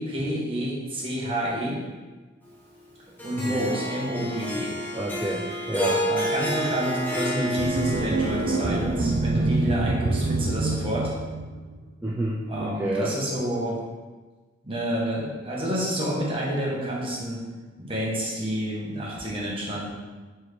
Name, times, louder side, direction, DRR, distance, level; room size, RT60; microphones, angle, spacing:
voice 1, 0.0-1.8 3.2-4.7 6.0-11.1 12.5-13.8 14.6-17.4 17.8-19.9, equal, 30° right, -5 dB, 1.5 m, -29 dB
Harp, 3.2-9.6, equal, 10° left, 1.3 m, -30 dB
voice 2, 4.9-6.0 12.0-13.1, right 1 dB, 10° right, -5 dB, 0.5 m, -29 dB
sound 1, 7.6-11.8, right 2 dB, 75° right, 0.6 m, -26 dB
4.5 x 4.4 x 5.1 m, 1.3 s
head